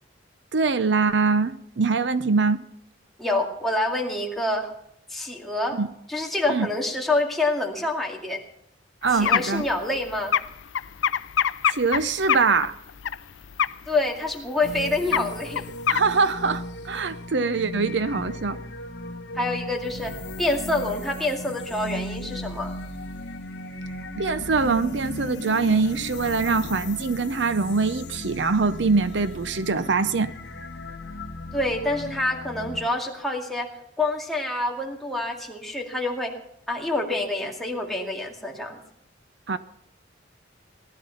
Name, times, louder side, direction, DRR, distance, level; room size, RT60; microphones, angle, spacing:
voice 1, 0.5-2.7 5.7-5.9 6.5-6.7 9.0-9.7 11.7-12.7 15.9-18.6 24.2-30.3 39.5-39.6, right 4 dB, 65° right, 0.6 m, -23 dB
voice 2, 3.2-4.7 5.1-5.8 6.1-8.4 9.1-10.4 13.9-15.7 19.3-22.7 31.5-33.7 34.0-36.4 36.7-38.8, left 2 dB, ahead, 2.2 m, -27 dB
sound 1, 9.0-13.2 13.4-13.9 14.3-14.4 14.6-14.8 15.1-16.0, left 8 dB, 80° left, 0.5 m, -25 dB
sound 2, 14.6-32.8, left 1 dB, 60° left, 1.4 m, -36 dB
18.5 x 12.0 x 5.7 m
head